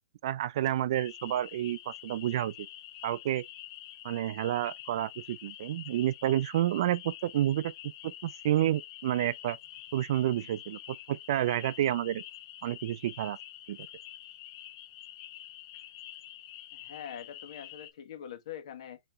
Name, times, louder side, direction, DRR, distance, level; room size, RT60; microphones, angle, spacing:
voice 1, 0.2-2.7 3.0-3.4 4.0-7.7 8.0-9.6 9.9-12.2 12.6-13.4 13.7-13.8, right 12 dB, 55° right, 0.4 m, -30 dB
sound 1, 0.9-17.9, left 13 dB, 40° left, 0.6 m, -47 dB
voice 2, 16.7-19.0, left 9 dB, 60° left, 1.3 m, -43 dB
4.4 x 3.0 x 3.2 m
hypercardioid pair, 135°, 3 cm